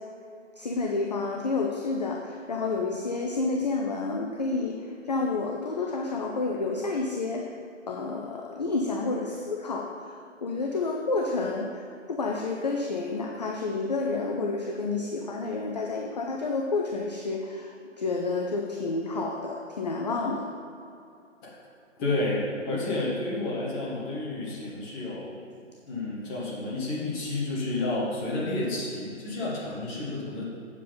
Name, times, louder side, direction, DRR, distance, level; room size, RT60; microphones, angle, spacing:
voice 1, 0.6-7.5 7.9-20.5, left 3 dB, 35° left, 1 dB, 0.5 m, -30 dB
voice 2, 22.0-25.4 25.8-30.5, left 2 dB, 10° left, -5 dB, 1.0 m, -30 dB
8.3 x 7.3 x 3.9 m, 2.5 s
figure-of-eight pair, 150°, 38 cm